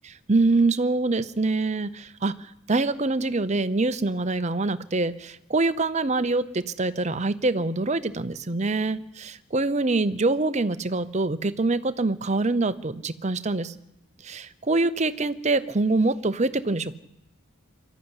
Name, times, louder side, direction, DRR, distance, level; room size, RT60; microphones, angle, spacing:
voice 1, 0.3-13.8 14.2-17.0, right 3 dB, 30° right, 13 dB, 0.8 m, -25 dB
24.0 x 13.5 x 9.8 m, 0.86 s
head